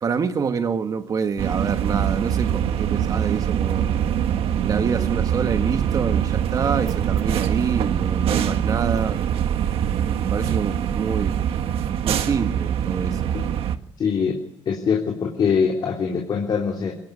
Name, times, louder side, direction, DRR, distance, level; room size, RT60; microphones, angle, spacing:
voice 1, 0.0-3.9 4.6-9.2 10.2-11.4 12.0-13.2, right 6 dB, 35° right, 1.6 m, -26 dB
sound 1, 1.4-13.8, right 9 dB, 60° right, 1.6 m, -23 dB
voice 2, 14.0-14.4 14.6-16.9, left 6 dB, 45° left, 3.4 m, -23 dB
24.0 x 20.0 x 9.6 m
cardioid pair, 160°, 11 cm